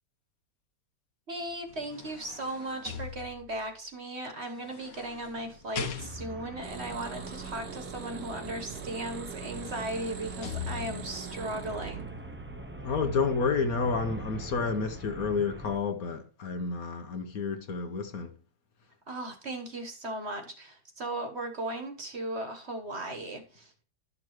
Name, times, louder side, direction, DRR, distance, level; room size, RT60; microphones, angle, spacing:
voice 1, 1.3-12.1 19.1-23.8, right 1 dB, 40° right, 1.3 m, -37 dB
sound 1, 1.5-3.7 4.5-6.5 8.8-8.9 9.3-11.3 11.8-12.0, left 7 dB, 90° left, 1.8 m, -41 dB
Traffic noise roadway noise, 6.0-15.8, right 2 dB, 15° right, 0.5 m, -43 dB
sound 2, 6.6-12.5 12.7-12.8, right 7 dB, 70° right, 1.4 m, -43 dB
voice 2, 12.8-18.3, left 5 dB, 60° left, 1.3 m, -30 dB
12.0 x 6.7 x 3.1 m
omnidirectional pair, 1.9 m